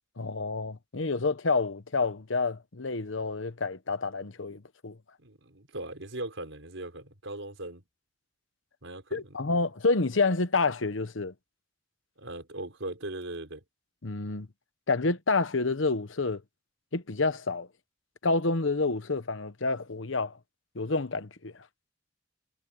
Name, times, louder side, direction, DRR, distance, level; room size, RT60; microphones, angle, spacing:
voice 1, 0.2-5.0 9.1-11.3 14.0-14.5 14.9-16.4 16.9-17.7 18.2-20.4 20.7-21.5, left 3 dB, 80° left, 1.1 m, -28 dB
voice 2, 5.2-7.8 8.8-9.3 12.2-13.6, right 1 dB, 80° right, 4.4 m, -39 dB
head